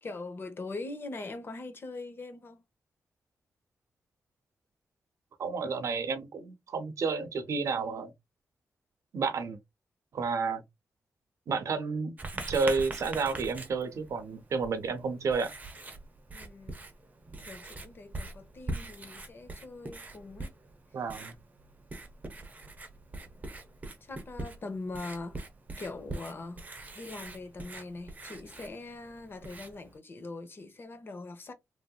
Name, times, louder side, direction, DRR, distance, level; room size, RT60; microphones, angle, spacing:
voice 1, 0.0-2.6 16.3-16.8 17.4-20.5 24.0-25.4 25.8-26.6 26.9-31.5, left 3 dB, 45° left, 0.8 m, -42 dB
voice 2, 5.4-8.1 9.1-9.6 10.1-10.6 11.5-12.1 12.5-15.5 20.9-21.3, right 4 dB, 70° right, 0.7 m, -31 dB
Writing, 12.2-30.0, right 2 dB, 30° right, 0.9 m, -43 dB
3.1 x 2.7 x 2.3 m
cardioid pair, 100°, 5 cm